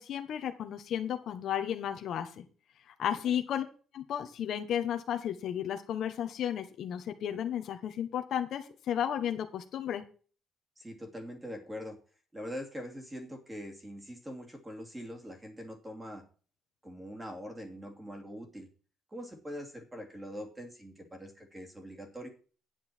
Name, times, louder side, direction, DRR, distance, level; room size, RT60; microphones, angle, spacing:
voice 1, 0.0-2.4 3.0-3.6 3.9-10.0, left 9 dB, 55° left, 6 dB, 1.3 m, -33 dB
voice 2, 10.8-12.0 12.3-16.2 16.8-18.7 19.1-22.3, equal, 10° right, 4 dB, 2.6 m, -43 dB
10.5 x 9.6 x 4.5 m, 0.39 s
cardioid pair, 160°, 0 cm